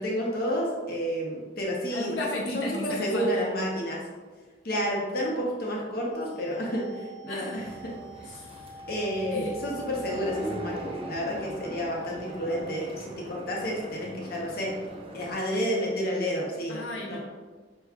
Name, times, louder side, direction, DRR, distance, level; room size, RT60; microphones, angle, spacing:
voice 1, 0.0-2.1 2.5-4.0 4.6-7.9 8.9-14.7 15.1-17.2, equal, 55° left, -3 dB, 0.9 m, -30 dB
voice 2, 1.9-3.3 7.3-7.6 8.3-8.7 9.3-9.6 16.7-17.2, left 2 dB, 85° left, -3 dB, 0.7 m, -34 dB
sound 1, 6.1-12.6, right 1 dB, 30° left, 1.3 m, -45 dB
sound 2, 7.5-15.3, right 1 dB, 30° right, 0.5 m, -41 dB
5.6 x 3.1 x 2.3 m, 1.4 s
head